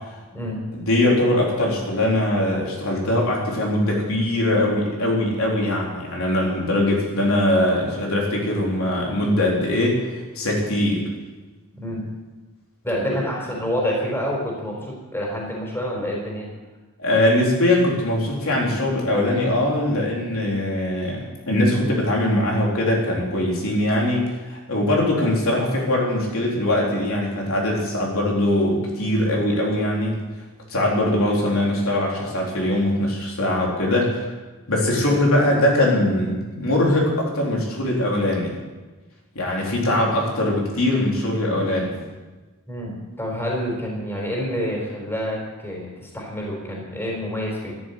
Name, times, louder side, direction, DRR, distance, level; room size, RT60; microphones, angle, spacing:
voice 1, 0.7-10.0 10.3-11.0 13.1-13.2 17.0-30.2 30.7-34.2 34.7-38.5 39.4-42.0, left 1 dB, 70° left, -2 dB, 4.0 m, -21 dB
voice 2, 12.8-16.5 42.7-47.7, equal, 10° left, -2 dB, 4.3 m, -28 dB
13.5 x 11.5 x 8.5 m, 1.2 s
head